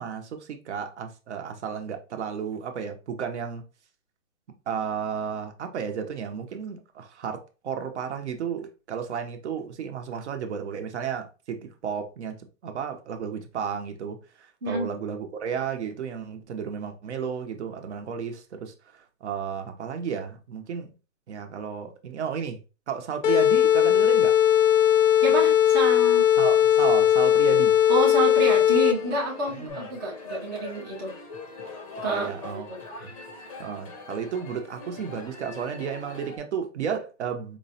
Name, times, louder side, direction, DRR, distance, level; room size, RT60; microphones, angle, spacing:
voice 1, 0.0-3.6 4.7-18.7 19.2-20.9 21.3-22.6 22.9-24.3 26.4-27.8 29.5-29.9 32.1-32.7 33.0-33.1 33.6-37.6, right 7 dB, 55° right, 0.8 m, -33 dB
sound 1, 23.2-29.2, left 10 dB, 70° left, 0.6 m, -19 dB
voice 2, 25.2-26.3 27.9-31.2 32.0-32.3 32.7-32.8, right 2 dB, 15° right, 0.4 m, -28 dB
sound 2, 28.8-36.4, left 3 dB, 25° left, 0.6 m, -42 dB
4.6 x 2.1 x 2.7 m
hypercardioid pair, 155°, 40 cm